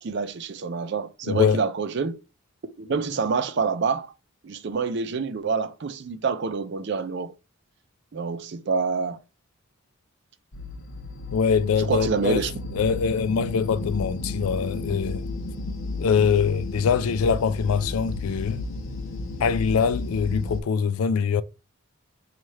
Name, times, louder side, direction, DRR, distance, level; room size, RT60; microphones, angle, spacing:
voice 1, 0.0-2.2 2.8-4.1 4.4-7.3 8.1-9.2 11.8-12.5, right 5 dB, 55° right, 0.4 m, -27 dB
voice 2, 1.3-1.6 11.3-12.4 12.7-15.2 16.0-18.6 19.4-21.4, left 6 dB, 85° left, 0.3 m, -23 dB
sound 1, 10.5-20.6, left 2 dB, 60° left, 0.7 m, -33 dB
3.2 x 2.4 x 4.1 m
head